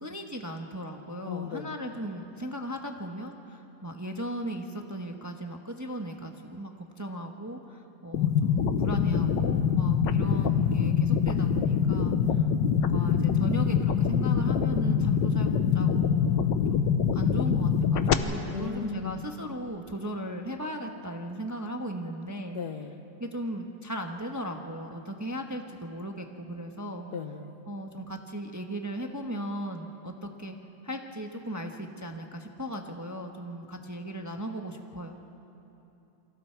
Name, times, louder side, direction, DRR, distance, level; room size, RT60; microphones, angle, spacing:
voice 1, 0.0-12.4 12.7-16.4 16.7-22.6 23.2-27.1 27.7-30.6 30.8-35.2, right 1 dB, 15° right, 3 dB, 0.9 m, -37 dB
voice 2, 1.3-1.8 18.5-19.3 22.5-23.0 27.1-27.5, left 7 dB, 65° left, 8 dB, 1.5 m, -36 dB
sound 1, 8.1-18.1, left 7 dB, 90° left, 1.6 m, -24 dB
28.5 x 25.0 x 4.6 m, 3.0 s
omnidirectional pair, 1.9 m